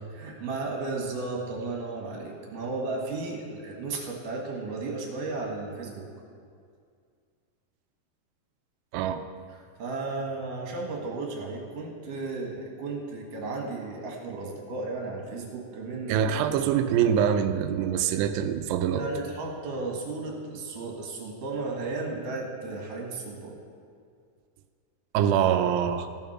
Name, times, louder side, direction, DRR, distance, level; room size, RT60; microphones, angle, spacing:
voice 1, 0.1-6.1 9.8-16.3 18.9-23.6, right 3 dB, 60° right, 0 dB, 2.9 m, -34 dB
voice 2, 8.9-9.2 16.1-19.0 25.1-26.1, right 9 dB, 85° right, 9 dB, 2.7 m, -24 dB
15.5 x 7.2 x 6.0 m, 2.2 s
omnidirectional pair, 4.8 m